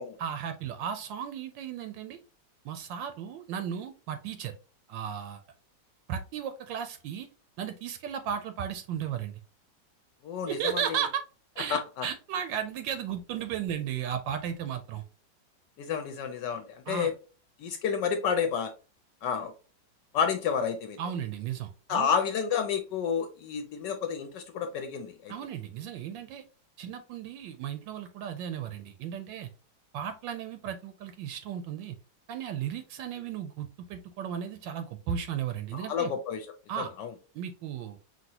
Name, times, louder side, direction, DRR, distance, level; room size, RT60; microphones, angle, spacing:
voice 1, 0.2-2.2 2.6-4.5 4.9-5.4 6.1-7.3 7.6-9.4 10.5-11.2 11.6-15.0 16.9-17.1 21.0-22.1 25.3-26.4 26.8-29.5 29.9-32.0 32.3-36.1 36.7-36.9 37.3-38.0, right 8 dB, 80° right, 9 dB, 1.2 m, -35 dB
voice 2, 10.2-11.0 11.7-12.1 15.8-17.1 17.6-18.7 19.2-19.5 20.1-21.0 21.9-25.3 35.7-37.1, left 7 dB, 75° left, 7 dB, 1.2 m, -30 dB
5.2 x 2.9 x 2.8 m, 0.34 s
omnidirectional pair, 2.1 m